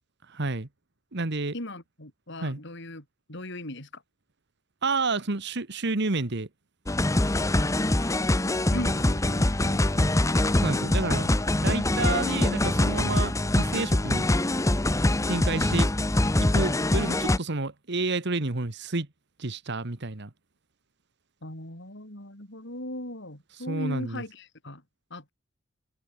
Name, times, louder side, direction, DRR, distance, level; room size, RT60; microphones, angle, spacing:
voice 1, 0.3-0.7 1.1-1.5 2.4-2.6 4.8-6.5 10.5-11.3 11.6-14.3 15.3-15.9 16.5-19.1 19.4-20.3 23.7-24.2, right 3 dB, 60° right, 1.5 m, -30 dB
voice 2, 1.5-4.0 8.7-10.1 10.6-11.0 21.4-24.8 25.1-25.3, left 1 dB, 65° left, 7.2 m, -38 dB
sound 1, 6.9-17.4, left 1 dB, 15° left, 0.8 m, -24 dB
head